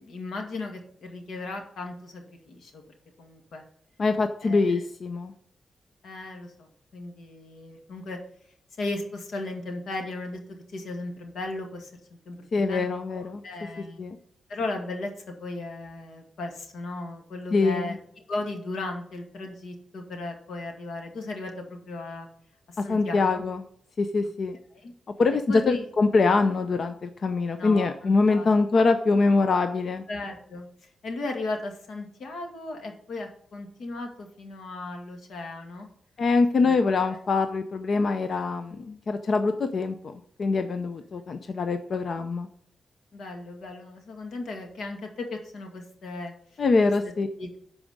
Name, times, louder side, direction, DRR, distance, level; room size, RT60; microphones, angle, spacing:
voice 1, 0.0-2.8 3.2-3.6 4.4-4.8 6.0-8.2 8.8-10.4 10.7-11.9 12.3-14.0 14.5-18.0 18.3-22.3 22.7-23.4 24.7-24.9 25.5-25.9 27.6-28.5 30.1-30.7 31.0-35.9 36.6-36.7 37.0-37.2 38.8-39.0 43.1-46.3 46.8-46.9 47.4-47.6, left 2 dB, 85° left, 3 dB, 2.2 m, -36 dB
voice 2, 4.0-5.3 12.5-13.4 14.0-14.2 17.5-17.9 22.8-23.6 24.0-24.6 25.2-30.0 36.2-42.5 46.6-47.3, left 3 dB, 45° left, 8 dB, 0.6 m, -24 dB
11.5 x 4.9 x 6.6 m, 0.63 s
wide cardioid pair, 170°, 0 cm